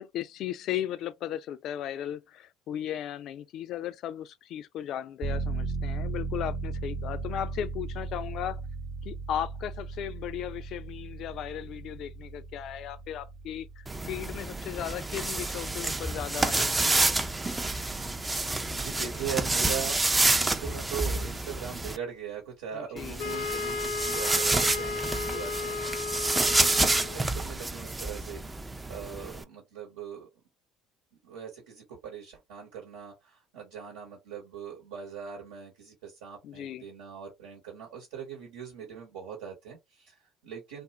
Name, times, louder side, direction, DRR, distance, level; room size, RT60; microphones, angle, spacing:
voice 1, 0.0-8.6 9.0-17.1 22.7-23.2 36.4-36.8, left 11 dB, 60° left, 0.3 m, -36 dB
sound 1, 5.2-17.7 18.1-18.2, right 3 dB, 50° right, 0.8 m, -37 dB
sound 2, 13.9-22.0 23.0-29.4, right 2 dB, 15° right, 0.4 m, -29 dB
voice 2, 18.1-26.1 26.4-30.3 31.2-40.8, right 8 dB, 80° right, 1.0 m, -41 dB
Wind instrument woodwind instrument, 23.2-27.2, left 4 dB, 85° left, 0.7 m, -34 dB
2.5 x 2.0 x 2.8 m
hypercardioid pair, 65°, 0 cm